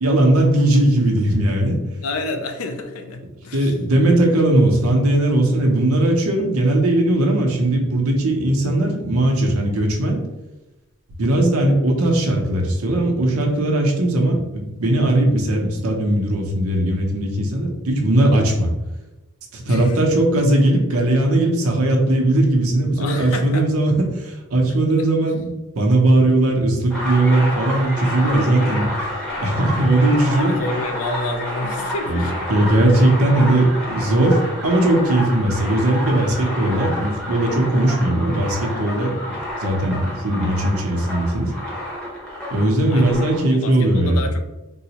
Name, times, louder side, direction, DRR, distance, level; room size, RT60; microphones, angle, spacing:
voice 1, 0.0-1.8 3.5-10.2 11.2-18.7 19.5-30.6 32.1-41.5 42.5-44.3, right 1 dB, 85° right, 2 dB, 0.6 m, -18 dB
voice 2, 2.0-3.7 19.6-20.0 23.0-23.7 30.3-32.6 36.2-36.5 42.9-44.4, left 2 dB, 70° left, 6 dB, 0.4 m, -30 dB
sound 1, 26.9-43.4, left 1 dB, 5° left, 0.8 m, -29 dB
3.8 x 2.0 x 2.8 m, 1.0 s
head